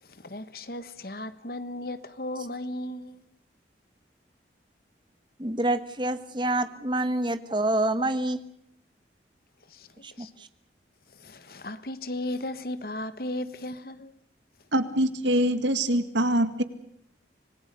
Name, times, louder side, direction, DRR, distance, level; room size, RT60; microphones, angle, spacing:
voice 1, 0.0-3.2 9.7-10.3 11.1-14.1, left 1 dB, 55° left, 1.3 m, -36 dB
voice 2, 5.4-8.4 10.0-10.5, right 1 dB, 25° right, 1.2 m, -27 dB
voice 3, 14.7-16.6, right 1 dB, 90° right, 2.1 m, -24 dB
26.0 x 20.0 x 6.7 m
head